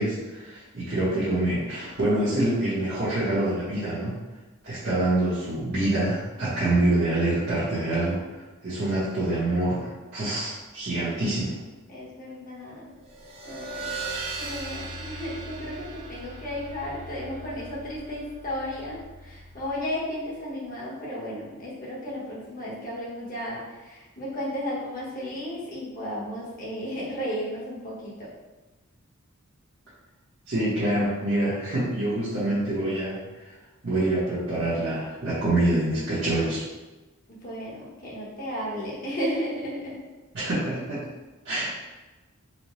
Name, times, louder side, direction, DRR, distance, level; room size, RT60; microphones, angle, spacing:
voice 1, 0.0-4.2 4.6-8.2 8.6-11.5 30.5-33.2 33.4-33.5 33.8-36.6 40.3-41.1 41.4-41.7, right 1 dB, 55° right, -12 dB, 1.0 m, -26 dB
voice 2, 1.3-1.6 11.9-12.8 13.4-14.0 14.4-28.3 37.3-40.0, equal, 40° left, -6 dB, 1.1 m, -34 dB
sound 1, 13.0-20.0, right 3 dB, 30° right, 0.7 m, -38 dB
4.2 x 2.2 x 3.1 m, 1.2 s
head